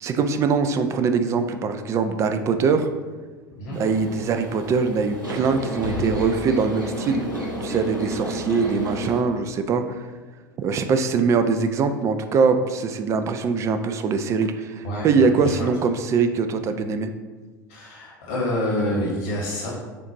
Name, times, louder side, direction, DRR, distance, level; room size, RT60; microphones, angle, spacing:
voice 1, 0.0-2.9 3.7-7.3 7.6-10.0 10.6-17.1, right 5 dB, 30° right, 9 dB, 0.3 m, -22 dB
sound 1, 3.7-9.2, right 1 dB, 85° right, 0.8 m, -31 dB
voice 2, 14.8-15.7 17.7-19.7, left 1 dB, 60° left, -5 dB, 1.3 m, -27 dB
6.7 x 2.5 x 2.9 m, 1.3 s
figure-of-eight pair, 75°, 11 cm